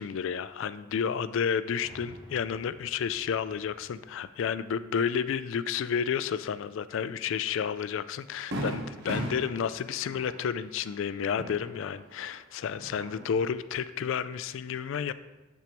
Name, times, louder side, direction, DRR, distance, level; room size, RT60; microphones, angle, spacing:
voice 1, 0.0-15.1, left 7 dB, 65° left, 14 dB, 0.3 m, -31 dB
sound 1, 1.8-5.4, right 1 dB, 25° right, 2.5 m, -54 dB
Fireworks, 7.5-7.6 8.0-8.1 8.5-12.3 12.6-13.5, right 1 dB, 50° right, 1.0 m, -38 dB
12.0 x 4.5 x 3.0 m, 1.1 s
head